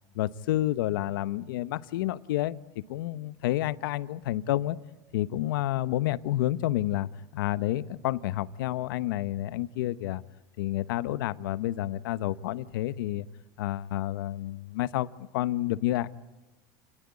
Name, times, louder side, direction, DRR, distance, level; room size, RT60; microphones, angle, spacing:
voice 1, 0.1-2.6 2.9-4.8 5.1-10.2 10.6-13.3 13.6-16.1, left 14 dB, 80° left, 0.9 m, -29 dB
28.5 x 19.0 x 9.5 m
supercardioid pair, 120°, 11 cm